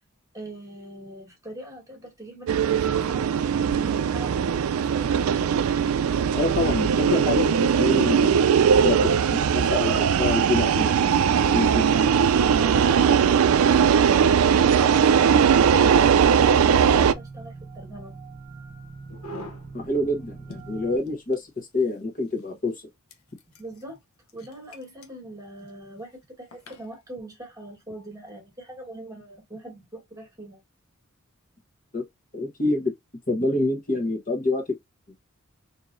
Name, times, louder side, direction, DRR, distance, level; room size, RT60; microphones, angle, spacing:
voice 1, 0.3-5.1 12.6-18.1 23.6-24.0 24.3-30.6, right 1 dB, 15° right, 1.4 m, -42 dB
sound 1, 2.5-17.1, right 7 dB, 75° right, 0.4 m, -20 dB
voice 2, 6.3-8.4 8.8-9.0 9.3-11.2 11.5-11.7 19.7-21.5 21.7-22.7 31.9-32.0 32.3-32.9 33.3-34.6, left 2 dB, 40° left, 1.1 m, -26 dB
sound 2, 9.8-21.0, right 4 dB, 35° right, 0.9 m, -45 dB
sound 3, 14.1-14.7 15.5-16.3 19.1-19.8 20.2-20.3 20.5-22.0 22.4-22.5 23.1-23.8 24.3-25.1 25.5-25.7 26.5-26.9, left 1 dB, 85° left, 0.8 m, -43 dB
4.6 x 2.8 x 2.5 m
head